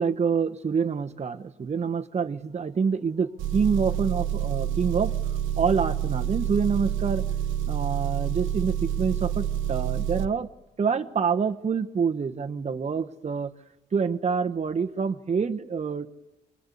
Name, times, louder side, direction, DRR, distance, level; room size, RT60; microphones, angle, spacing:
voice 1, 0.0-5.1 5.6-7.2 7.7-10.5 10.8-13.5 13.9-16.1, right 6 dB, 35° right, 6 dB, 1.2 m, -26 dB
Engine, 3.4-10.3, right 10 dB, 85° right, 1.3 m, -28 dB
25.0 x 20.5 x 8.5 m, 1.0 s
cardioid pair, 90°, 20 cm